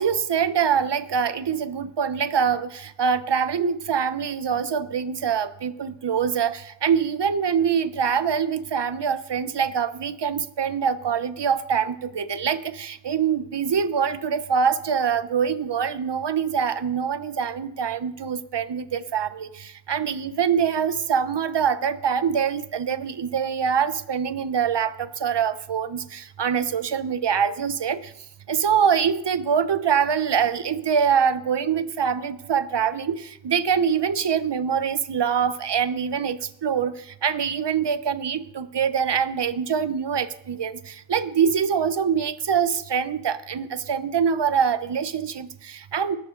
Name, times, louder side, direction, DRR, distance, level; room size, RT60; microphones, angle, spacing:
voice 1, 0.0-28.1 28.5-46.2, right 7 dB, 60° right, 13 dB, 1.0 m, -24 dB
17.5 x 13.5 x 3.9 m, 0.81 s
cardioid pair, 55°, 48 cm